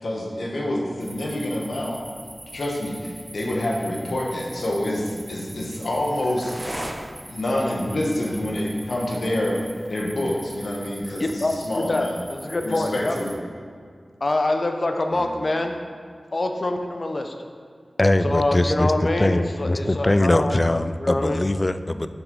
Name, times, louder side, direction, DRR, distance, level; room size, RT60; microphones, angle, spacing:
voice 1, 0.0-2.0 2.5-6.9 7.3-9.6 9.9-12.2 12.6-13.3 15.1-15.3, left 1 dB, 80° left, -2 dB, 1.2 m, -27 dB
sound 1, 1.0-13.4, right 1 dB, 15° right, 0.6 m, -41 dB
voice 2, 11.2-13.2 14.2-15.7 16.3-17.3 18.2-20.5 21.0-21.4, left 2 dB, 50° left, 5 dB, 0.7 m, -25 dB
voice 3, 18.0-22.1, left 1 dB, 30° left, 12 dB, 0.3 m, -21 dB
7.3 x 5.9 x 3.9 m, 2.1 s
wide cardioid pair, 50°, 0 cm